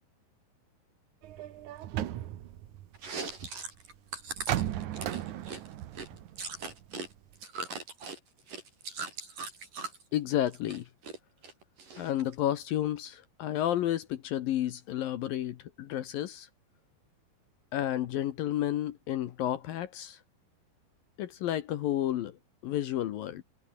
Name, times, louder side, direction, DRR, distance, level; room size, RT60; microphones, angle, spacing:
sound 1, 1.2-3.5 4.3-7.1 7.4-7.5, right 12 dB, 70° right, 1.9 m, -36 dB
Chewing mastication, 2.9-7.1 7.3-10.0 10.4-11.2 11.4-12.3, right 4 dB, 45° right, 8.0 m, -40 dB
voice 1, 10.1-10.9 12.0-16.5 17.7-20.2 21.2-22.4 22.6-23.4, left 12 dB, 70° left, 2.4 m, -31 dB
omnidirectional pair, 5.2 m